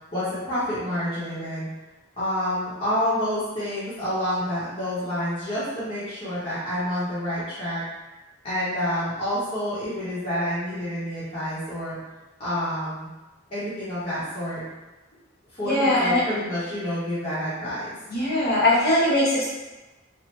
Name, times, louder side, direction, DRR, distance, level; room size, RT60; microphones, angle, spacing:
voice 1, 0.1-1.7 2.2-7.8 8.4-12.0 12.4-13.1 13.5-14.6 15.5-17.9, equal, 30° left, -13 dB, 0.8 m, -28 dB
voice 2, 15.6-16.2 18.1-19.5, left 1 dB, 50° left, -8 dB, 1.1 m, -21 dB
3.0 x 2.1 x 3.2 m, 1.1 s
head